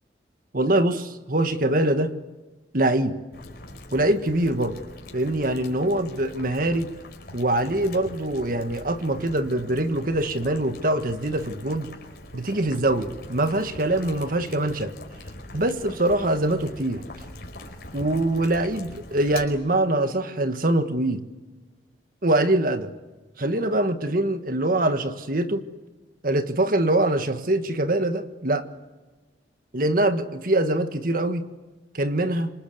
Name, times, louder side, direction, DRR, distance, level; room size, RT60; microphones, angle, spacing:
voice 1, 0.5-2.1 2.7-3.2 3.9-4.8 5.1-6.9 7.3-11.9 12.3-14.9 15.5-17.0 17.9-21.3 22.2-22.9 23.4-25.7 26.2-28.7 29.7-31.4 31.9-32.5, right 1 dB, 50° right, 9 dB, 1.7 m, -23 dB
Boiling, 3.3-19.4, left 1 dB, 60° left, 4.9 m, -42 dB
27.5 x 25.0 x 8.0 m, 1.2 s
head